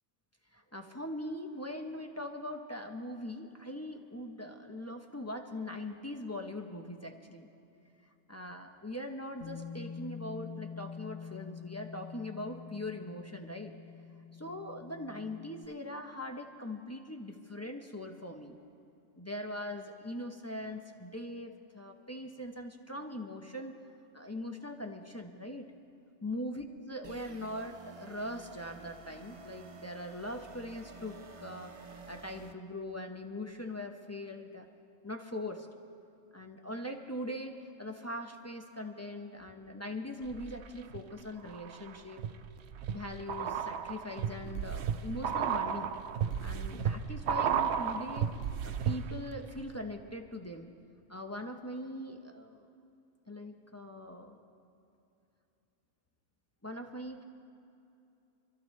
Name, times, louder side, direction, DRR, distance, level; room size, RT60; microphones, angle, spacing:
voice 1, 0.5-7.5 8.3-13.7 14.4-18.6 19.2-23.8 24.1-25.7 26.2-31.7 32.1-34.7 35.0-35.7 36.3-42.2 42.9-45.9 46.4-48.3 48.6-50.7 51.1-52.7 53.3-54.4 56.6-57.2, left 1 dB, 15° left, 3 dB, 0.6 m, -41 dB
Bass guitar, 9.4-15.7, left 6 dB, 45° left, 0.9 m, -46 dB
sound 1, 27.0-32.5, right 4 dB, 40° right, 0.5 m, -51 dB
sound 2, 40.3-41.0 41.5-49.3 49.6-49.7, right 8 dB, 65° right, 0.8 m, -34 dB
27.0 x 13.5 x 3.2 m, 2.7 s
omnidirectional pair, 1.3 m